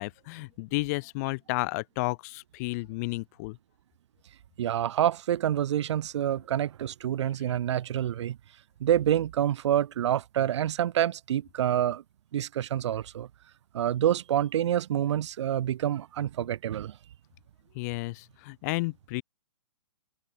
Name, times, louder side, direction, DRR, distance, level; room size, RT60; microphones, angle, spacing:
voice 1, 0.0-3.6 17.7-19.2, left 25 dB, 35° left, 0.4 m, -32 dB
voice 2, 4.6-8.4 8.8-12.0 12.3-13.3 13.7-17.0, right 11 dB, 65° right, 0.7 m, -27 dB
hypercardioid pair, 135°, 16 cm